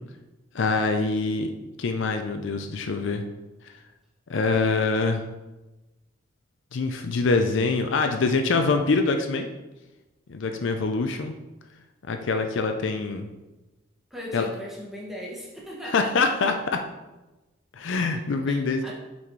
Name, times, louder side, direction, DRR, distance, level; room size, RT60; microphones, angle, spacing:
voice 1, 0.5-1.5 1.8-3.2 4.3-5.2 6.7-9.5 10.3-11.3 12.1-13.3 14.3-14.5 15.9-16.8 17.7-18.9, left 3 dB, 60° left, 6 dB, 0.5 m, -24 dB
voice 2, 14.1-16.1 18.5-18.9, equal, ahead, -4 dB, 1.2 m, -38 dB
6.0 x 4.2 x 4.5 m, 1.1 s
head